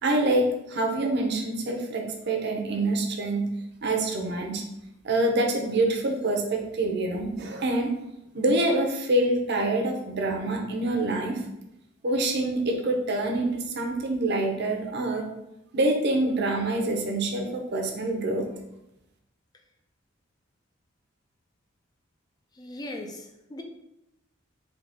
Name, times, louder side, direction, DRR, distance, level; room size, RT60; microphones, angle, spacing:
voice 1, 0.0-3.5 3.8-4.6 5.0-7.9 8.3-11.4 12.0-15.2 15.7-18.5, right 2 dB, 60° right, 2 dB, 0.7 m, -26 dB
voice 2, 22.6-23.6, left 1 dB, 20° left, 2 dB, 0.4 m, -39 dB
4.0 x 2.9 x 3.5 m, 0.88 s
head